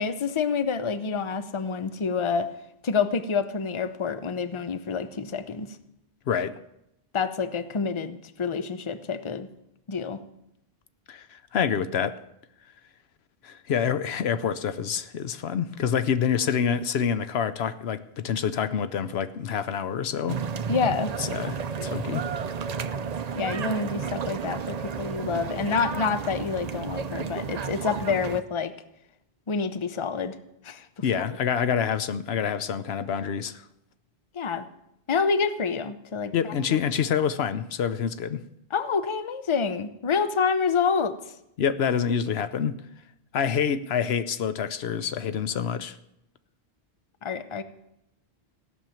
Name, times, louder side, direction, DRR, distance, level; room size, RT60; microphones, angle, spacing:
voice 1, 0.0-2.5 2.8-5.7 7.1-9.5 9.9-10.2 20.7-21.1 23.3-28.7 29.5-30.4 30.6-30.8 31.1-31.2 34.3-34.7 35.1-36.3 36.7-36.8 38.7-41.2 47.2-47.6, left 5 dB, 35° left, 0.7 m, -27 dB
voice 2, 6.3-6.6 11.1-12.2 13.4-20.4 21.2-22.3 31.0-33.6 36.3-38.4 41.6-42.7 43.3-46.0, left 7 dB, 80° left, 0.9 m, -27 dB
sound 1, 20.3-28.4, right 6 dB, 45° right, 0.6 m, -32 dB
16.0 x 6.4 x 8.9 m
omnidirectional pair, 1.0 m